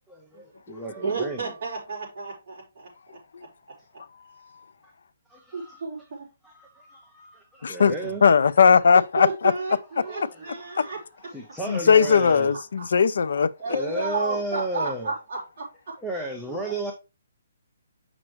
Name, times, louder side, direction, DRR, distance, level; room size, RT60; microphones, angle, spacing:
voice 1, 0.1-1.5 4.8-4.9 5.3-5.8 6.4-8.2 10.0-10.4 11.3-12.5 13.7-15.1 16.0-16.9, right 2 dB, ahead, 0.6 m, -33 dB
voice 2, 1.0-3.2 5.5-6.3 9.2-11.0 13.6-15.9 16.5-16.7, right 3 dB, 30° right, 4.7 m, -32 dB
voice 3, 7.6-9.5 10.8-10.9 11.7-13.5, left 6 dB, 60° left, 0.5 m, -19 dB
7.3 x 6.1 x 3.1 m
hypercardioid pair, 180°, 0 cm